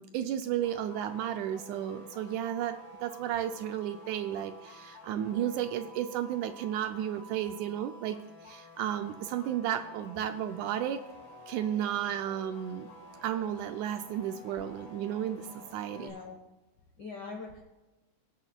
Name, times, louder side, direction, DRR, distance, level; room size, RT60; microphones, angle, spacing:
voice 1, 0.0-11.0 11.5-12.9 13.2-16.2, right 10 dB, 80° right, 8 dB, 1.8 m, -33 dB
sound 1, 0.6-16.1, left 1 dB, 35° left, 3.7 m, -51 dB
voice 2, 5.2-5.5 14.6-14.7 15.9-16.4 17.0-17.6, left 4 dB, 65° left, 1 dB, 1.0 m, -43 dB
24.5 x 8.2 x 2.2 m, 1.1 s
omnidirectional pair, 3.8 m